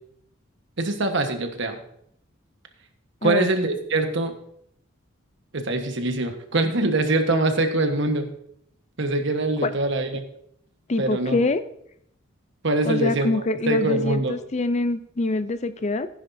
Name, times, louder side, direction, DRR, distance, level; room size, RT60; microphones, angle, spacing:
voice 1, 0.8-1.8 3.2-4.3 5.5-8.3 9.0-10.2 11.0-11.4 12.6-13.3 13.7-14.3, right 2 dB, 60° right, 6 dB, 1.3 m, -23 dB
voice 2, 10.9-11.6 12.9-16.1, left 2 dB, 35° left, 12 dB, 0.5 m, -24 dB
15.5 x 9.9 x 2.7 m, 0.71 s
head